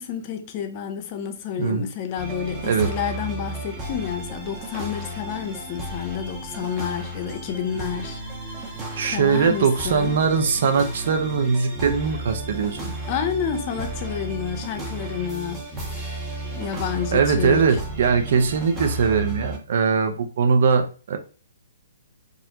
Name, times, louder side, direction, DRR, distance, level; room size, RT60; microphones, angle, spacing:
voice 1, 0.0-8.2 9.1-10.2 13.0-16.1 16.5-17.8, left 8 dB, 35° left, 0.4 m, -30 dB
sound 1, 2.2-19.6, right 1 dB, 15° right, 0.7 m, -33 dB
voice 2, 9.0-12.9 17.1-21.2, right 5 dB, 55° right, 0.5 m, -21 dB
2.4 x 2.1 x 2.7 m
figure-of-eight pair, 130°, 0 cm